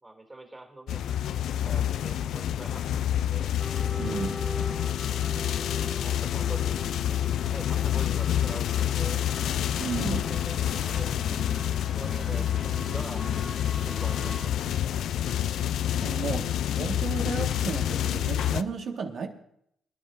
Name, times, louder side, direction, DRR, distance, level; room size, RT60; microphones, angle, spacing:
voice 1, 0.0-3.5 5.8-6.9 7.5-9.2 10.0-13.3 13.7-14.6, right 2 dB, 20° right, 4 dB, 2.5 m, -45 dB
sound 1, 0.9-18.6, left 10 dB, 75° left, 0.4 m, -28 dB
sound 2, 3.6-14.5, left 1 dB, 10° left, 1.7 m, -41 dB
voice 2, 4.0-4.3 9.8-10.2 12.3-12.4 15.5-15.6 16.0-19.3, right 5 dB, 60° right, 3 dB, 1.6 m, -33 dB
25.0 x 10.5 x 2.6 m, 0.72 s
cardioid pair, 90°, 0 cm